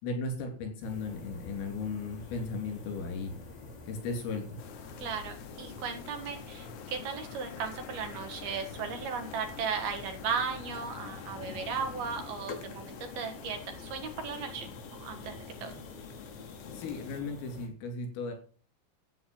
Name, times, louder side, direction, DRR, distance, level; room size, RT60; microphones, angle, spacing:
voice 1, 0.0-3.3 3.9-4.5 16.7-18.3, left 3 dB, 85° left, 4 dB, 6.1 m, -36 dB
sound 1, 0.8-17.7, left 2 dB, 50° left, 5.9 m, -49 dB
sound 2, 4.6-17.2, left 7 dB, 70° left, 3.5 m, -46 dB
voice 2, 5.0-15.8, right 6 dB, 60° right, 6 dB, 3.0 m, -36 dB
13.0 x 8.5 x 5.5 m, 0.40 s
omnidirectional pair, 5.7 m